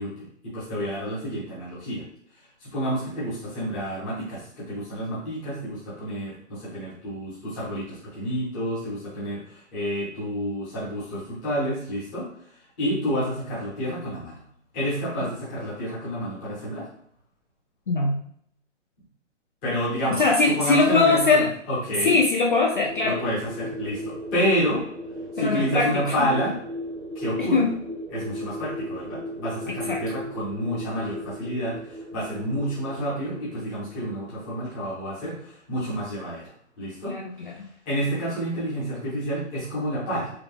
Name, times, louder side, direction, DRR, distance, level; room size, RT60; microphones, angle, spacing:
voice 1, 0.0-2.0 2.3-14.4 14.7-16.9 19.6-22.2 23.0-24.8 25.3-26.6 27.1-27.6 28.1-36.5 36.8-37.1 37.4-37.5 37.9-40.3, equal, 5° left, -10 dB, 0.7 m, -29 dB
voice 2, 17.9-18.2 20.2-21.5 22.0-23.2 25.4-26.3 27.4-27.7 29.9-30.0 37.0-37.5, left 3 dB, 45° left, 0 dB, 0.4 m, -21 dB
sound 1, 22.7-34.6, left 1 dB, 50° right, 1.0 m, -36 dB
4.9 x 2.3 x 3.3 m, 0.64 s
hypercardioid pair, 170°, 37 cm